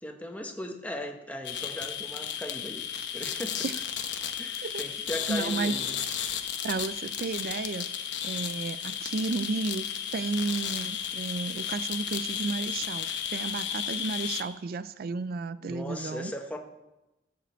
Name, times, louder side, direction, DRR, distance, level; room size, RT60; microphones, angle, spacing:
voice 1, 0.0-2.8 3.1-3.7 4.4-6.0 15.6-16.6, left 1 dB, 10° left, 4 dB, 1.0 m, -38 dB
sound 1, 1.4-14.4, left 9 dB, 65° left, 1.0 m, -34 dB
voice 2, 5.3-5.7 6.6-7.9 8.2-16.3, right 4 dB, 50° right, 15 dB, 0.4 m, -33 dB
14.5 x 5.1 x 7.8 m, 0.98 s
head